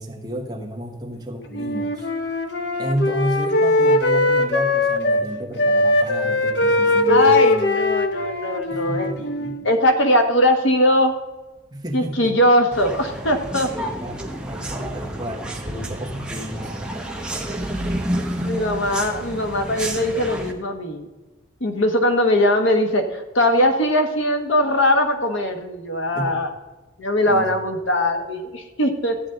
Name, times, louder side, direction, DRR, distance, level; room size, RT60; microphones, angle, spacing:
voice 1, 0.0-2.1 2.8-7.5 7.9-8.2 8.7-9.7 11.7-12.4 13.7-17.0 17.6-17.7 26.1-26.4 27.3-27.5, right 1 dB, 20° right, 2 dB, 1.2 m, -31 dB
Wind instrument woodwind instrument, 1.5-5.3 5.6-9.7, left 2 dB, 60° left, 0.8 m, -20 dB
voice 2, 7.1-9.1 9.6-11.1 11.9-13.7 18.4-21.0 21.6-26.5 27.0-29.2, left 1 dB, 80° left, 5 dB, 1.3 m, -20 dB
sound 1, 12.7-20.5, right 1 dB, 5° right, 1.0 m, -29 dB
13.5 x 9.0 x 3.9 m, 1.1 s
head